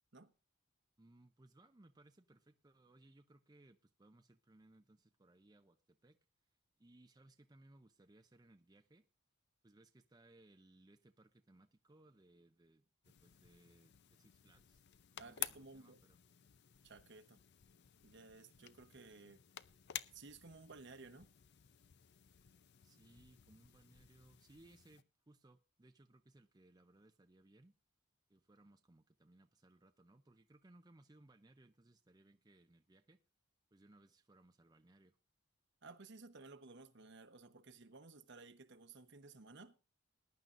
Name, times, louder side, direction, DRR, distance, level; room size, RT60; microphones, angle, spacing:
voice 1, 1.0-6.2 6.8-9.1 9.6-14.8 15.1-16.2 22.8-27.7 28.3-33.2 33.7-35.2, right 2 dB, 20° right, 0.5 m, -66 dB
sound 1, 13.0-25.0, left 12 dB, 55° left, 0.5 m, -52 dB
voice 2, 15.2-16.0 16.8-17.4 18.0-19.4 20.1-21.3 35.8-39.8, right 3 dB, 60° right, 1.0 m, -56 dB
20.5 x 10.5 x 2.6 m
head